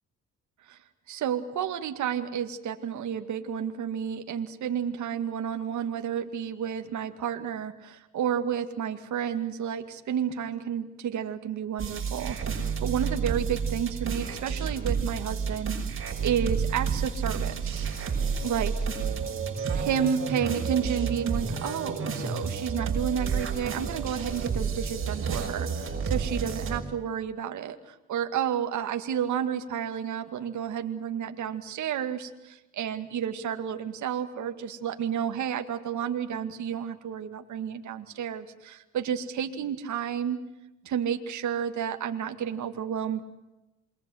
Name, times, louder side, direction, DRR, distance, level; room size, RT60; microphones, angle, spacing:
voice 1, 1.1-17.9 18.1-18.7 19.7-40.4 40.9-43.2, right 8 dB, 70° right, 7 dB, 2.2 m, -31 dB
sound 1, 11.8-26.8, right 6 dB, 45° right, 6.1 m, -30 dB
28.0 x 23.0 x 7.9 m, 0.98 s
cardioid pair, 90°, 30 cm